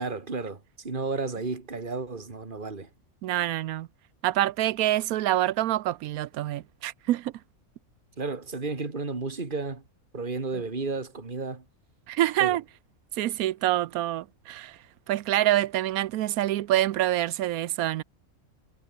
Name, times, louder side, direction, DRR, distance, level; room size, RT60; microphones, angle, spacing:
voice 1, 0.0-2.9 8.2-9.8 10.1-11.6 12.4-12.6, right 4 dB, 35° right, 2.6 m, -32 dB
voice 2, 3.2-3.9 4.2-7.3 12.1-12.6 13.2-14.8 15.1-18.0, right 14 dB, 85° right, 1.1 m, -26 dB
omnidirectional pair, 1.5 m